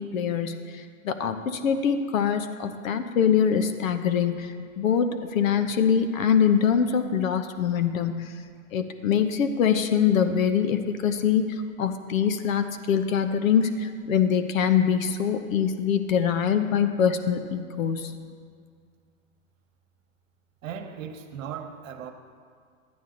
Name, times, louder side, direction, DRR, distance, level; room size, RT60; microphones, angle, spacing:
voice 1, 0.0-8.3 8.7-11.5 11.8-18.1, left 7 dB, 75° left, 8 dB, 1.0 m, -24 dB
voice 2, 18.0-18.4 20.6-22.1, right 8 dB, 70° right, 5 dB, 1.2 m, -38 dB
12.0 x 9.2 x 3.9 m, 2.1 s
hypercardioid pair, 125°, 41 cm